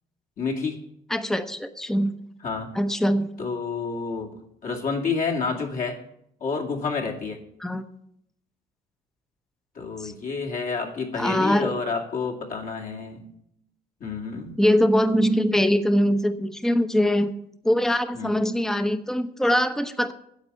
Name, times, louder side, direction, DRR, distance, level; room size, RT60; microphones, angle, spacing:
voice 1, 0.4-0.8 2.4-2.7 3.4-6.0 6.4-7.4 9.7-13.2 14.0-14.6 18.1-18.4, left 4 dB, 55° left, 0 dB, 2.4 m, -29 dB
voice 2, 1.1-2.1 2.7-3.3 7.6-7.8 10.0-10.1 11.2-11.7 14.6-17.3 17.6-20.1, equal, 5° left, 10 dB, 0.8 m, -22 dB
9.8 x 7.9 x 8.3 m, 0.75 s
cardioid pair, 110°, 17 cm